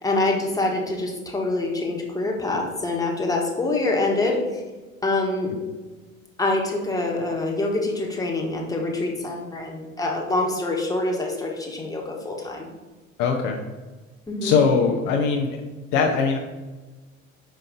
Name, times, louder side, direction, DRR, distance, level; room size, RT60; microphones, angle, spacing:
voice 1, 0.0-4.6 5.0-5.5 6.4-12.7 14.3-14.6, left 2 dB, 10° left, -1 dB, 1.3 m, -25 dB
voice 2, 13.2-13.6 14.4-15.6 15.9-16.4, left 5 dB, 50° left, 2 dB, 0.7 m, -21 dB
5.4 x 5.1 x 3.7 m, 1.2 s
figure-of-eight pair, 70°, 41 cm